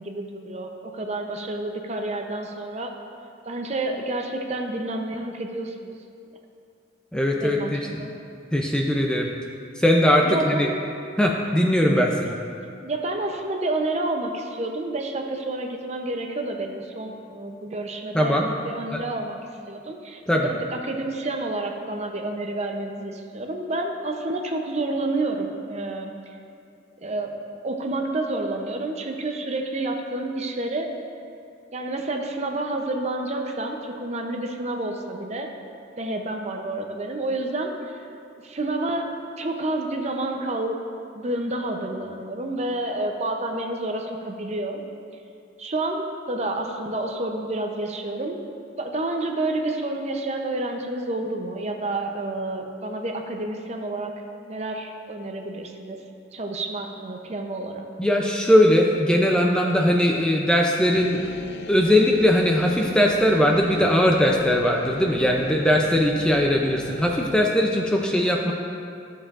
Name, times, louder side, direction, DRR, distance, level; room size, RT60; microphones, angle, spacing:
voice 1, 0.0-2.9 3.5-5.9 7.4-7.7 8.0-8.1 10.2-10.8 12.0-12.2 12.7-18.4 18.6-19.4 19.7-26.1 27.0-27.4 27.6-30.9 31.7-35.5 36.0-38.1 38.4-40.8 41.1-44.8 45.6-48.4 48.8-54.1 54.5-56.0 56.3-57.8, right 2 dB, 35° right, 3 dB, 0.6 m, -29 dB
voice 2, 7.1-8.0 8.5-9.3 9.8-10.7 11.2-12.4 18.1-18.5 18.9-19.0 20.3-20.5 58.0-61.3 61.7-68.5, equal, 5° left, 0 dB, 0.4 m, -20 dB
sound 1, 60.9-67.4, left 4 dB, 55° left, 0.5 m, -39 dB
13.5 x 6.6 x 2.5 m, 2.4 s
head